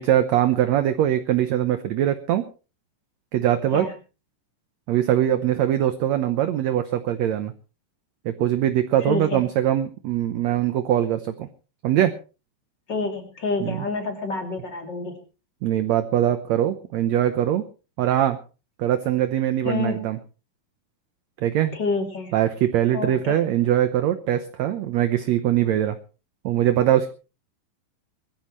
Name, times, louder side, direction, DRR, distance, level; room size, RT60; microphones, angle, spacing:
voice 1, 0.0-2.5 3.3-3.9 4.9-7.5 8.3-11.5 11.8-12.1 13.6-13.9 15.6-17.6 18.0-18.4 18.8-20.2 21.4-21.8 22.3-26.0 26.4-27.1, right 11 dB, 70° right, 10 dB, 1.7 m, -22 dB
voice 2, 9.0-9.4 12.9-15.2 19.6-20.0 21.7-22.3 22.9-23.4, left 3 dB, 30° left, 3 dB, 3.3 m, -28 dB
22.0 x 14.0 x 3.1 m, 0.34 s
omnidirectional pair, 4.1 m